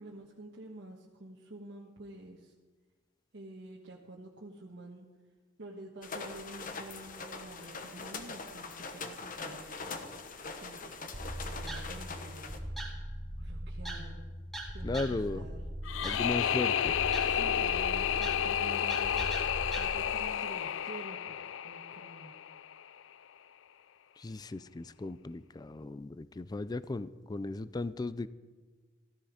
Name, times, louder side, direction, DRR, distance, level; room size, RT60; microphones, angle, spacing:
voice 1, 0.0-2.5 3.3-5.0 5.6-9.8 10.6-12.6 13.4-14.2 14.7-15.7 17.2-21.4 21.6-22.4, right 1 dB, 65° right, -2 dB, 1.3 m, -49 dB
sound 1, 6.0-12.6, left 4 dB, 45° left, 1.1 m, -42 dB
sound 2, 11.1-19.9, right 1 dB, ahead, 2.3 m, -40 dB
voice 2, 14.8-15.5 16.0-17.0 24.2-28.3, left 2 dB, 20° left, 16 dB, 0.4 m, -36 dB
sound 3, 15.8-22.8, left 9 dB, 85° left, 0.4 m, -31 dB
14.5 x 13.5 x 5.0 m, 1.4 s
head